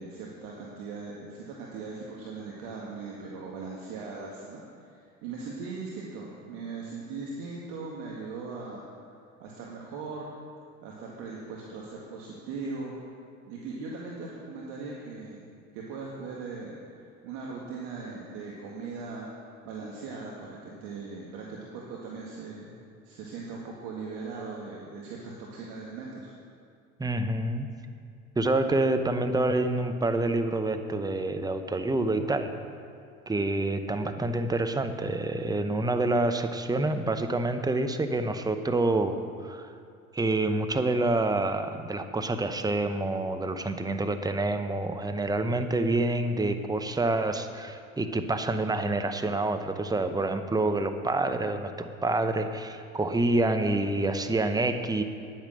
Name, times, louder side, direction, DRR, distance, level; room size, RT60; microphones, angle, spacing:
voice 1, 0.0-8.8 9.4-10.3 10.8-13.0 13.5-15.5 15.7-19.3 19.6-22.8 23.0-26.3, right 4 dB, 65° right, -3 dB, 1.9 m, -39 dB
voice 2, 27.0-27.7 28.4-32.5 33.3-39.7 40.1-55.0, right 2 dB, 10° right, 8 dB, 0.8 m, -27 dB
10.0 x 9.1 x 6.5 m, 2.4 s
hypercardioid pair, 75°, 40 cm